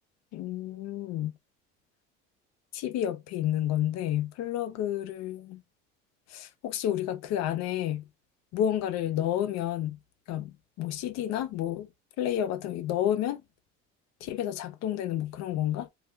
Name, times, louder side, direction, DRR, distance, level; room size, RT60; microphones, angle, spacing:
voice 1, 0.3-1.3 2.7-5.6 6.3-8.0 8.5-10.0 10.3-11.9 12.2-13.4 14.2-15.9, left 11 dB, 60° left, 0.5 m, -30 dB
2.2 x 2.2 x 3.1 m
supercardioid pair, 95°, 30 cm